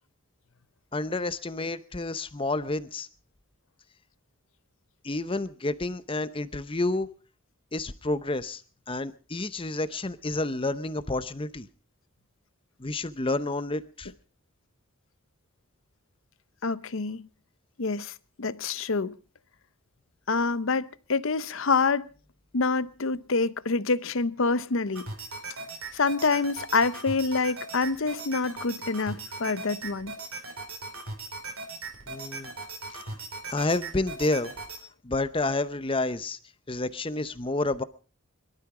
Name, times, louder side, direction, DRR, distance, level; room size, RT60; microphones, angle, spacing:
voice 1, 0.9-3.1 5.0-7.1 7.7-8.6 8.9-11.7 12.8-14.1 32.1-32.5 32.9-33.0 33.5-34.5 35.0-36.4 36.7-37.8, left 2 dB, 25° left, 0.7 m, -29 dB
voice 2, 16.6-17.3 17.8-19.1 20.3-22.1 22.5-25.1 25.9-30.2, left 4 dB, 65° left, 0.8 m, -27 dB
sound 1, 24.9-34.8, right 3 dB, 85° right, 4.8 m, -39 dB
23.0 x 12.5 x 4.9 m
head